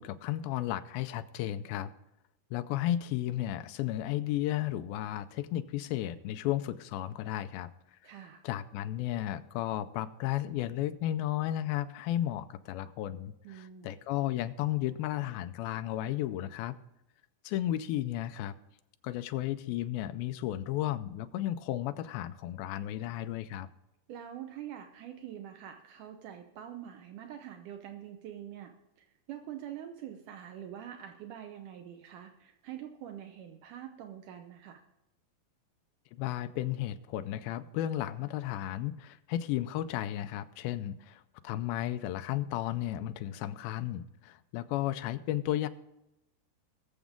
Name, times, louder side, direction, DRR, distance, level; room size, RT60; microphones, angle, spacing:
voice 1, 0.0-1.9 2.5-7.7 8.0-8.1 8.4-16.8 17.4-18.5 19.0-23.7 36.1-45.7, left 13 dB, 85° left, 10 dB, 2.2 m, -34 dB
voice 2, 8.0-8.4 13.4-13.9 24.1-34.8, right 10 dB, 85° right, 5 dB, 1.8 m, -45 dB
21.0 x 7.2 x 3.6 m, 0.90 s
omnidirectional pair, 4.7 m